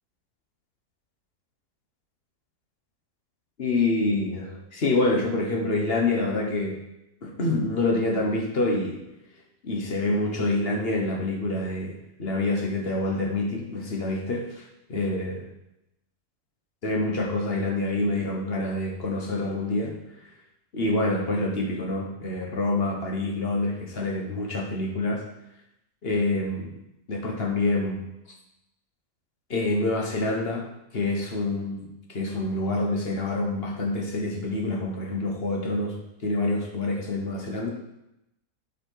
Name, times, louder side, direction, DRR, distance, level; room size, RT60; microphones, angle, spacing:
voice 1, 3.6-6.8 7.2-9.0 9.6-14.6 14.9-15.4 16.8-20.0 20.7-25.2 26.0-26.7 27.1-28.1 29.5-30.7 30.9-36.0 36.2-37.7, left 2 dB, 45° left, 0 dB, 1.2 m, -27 dB
8.5 x 5.4 x 4.5 m, 0.87 s
omnidirectional pair, 1.7 m